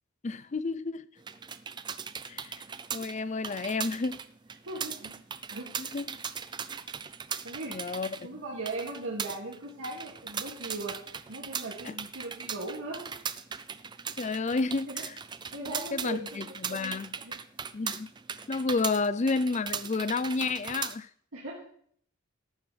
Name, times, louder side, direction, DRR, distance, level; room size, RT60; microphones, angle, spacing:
voice 1, 0.2-1.1 2.3-2.6 2.9-4.2 5.8-6.2 7.7-8.4 11.8-11.9 14.2-15.1 15.9-17.2 17.7-18.1 18.5-21.1, left 3 dB, 35° left, 0.4 m, -31 dB
sound 1, 1.2-21.0, right 7 dB, 20° right, 0.4 m, -39 dB
voice 2, 4.7-5.2 5.5-5.7 7.4-7.8 8.2-13.2 14.9-15.0 15.5-16.3 16.7-17.4 21.3-21.7, right 2 dB, 80° right, 2.4 m, -39 dB
13.5 x 12.0 x 3.4 m
head